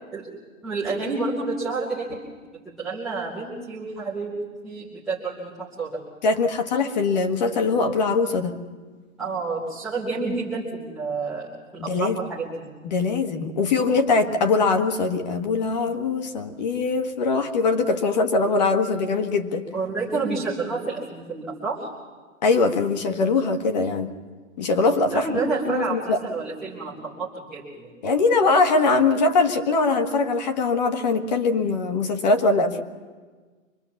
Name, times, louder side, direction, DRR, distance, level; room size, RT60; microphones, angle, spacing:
voice 1, 0.6-2.2 2.6-4.3 4.6-6.0 9.2-12.6 19.7-21.9 25.1-27.9, right 3 dB, ahead, -13 dB, 0.6 m, -29 dB
voice 2, 6.2-8.6 11.8-12.2 12.8-19.7 22.4-24.1 24.6-25.4 25.6-26.2 28.0-32.8, left 3 dB, 30° left, 6 dB, 1.6 m, -22 dB
25.0 x 21.5 x 7.1 m, 1.5 s
hypercardioid pair, 165°, 41 cm